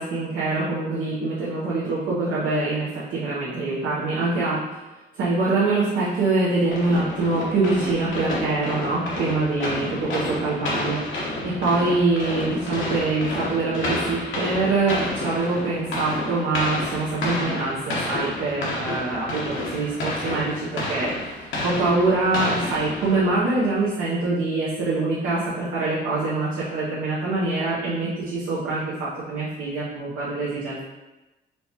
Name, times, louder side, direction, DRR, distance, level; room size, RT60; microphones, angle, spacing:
voice 1, 0.0-4.6 5.2-11.0 11.4-21.3 21.6-30.8, right 3 dB, 80° right, -8 dB, 0.8 m, -24 dB
sound 1, 6.7-23.5, left 1 dB, 75° left, 1.0 m, -30 dB
4.4 x 2.2 x 2.8 m, 1.1 s
cardioid pair, 90°, 20 cm